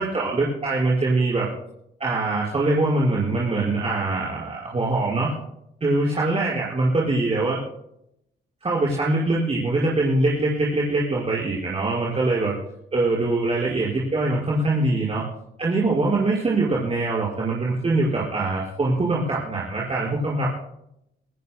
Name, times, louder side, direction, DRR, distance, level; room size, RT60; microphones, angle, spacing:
voice 1, 0.0-1.5 2.0-5.3 5.8-7.6 8.6-12.5 12.9-15.2 15.6-20.5, right 2 dB, 30° right, -5 dB, 5.7 m, -23 dB
26.0 x 16.0 x 2.2 m, 0.77 s
cardioid pair, 90°, 20 cm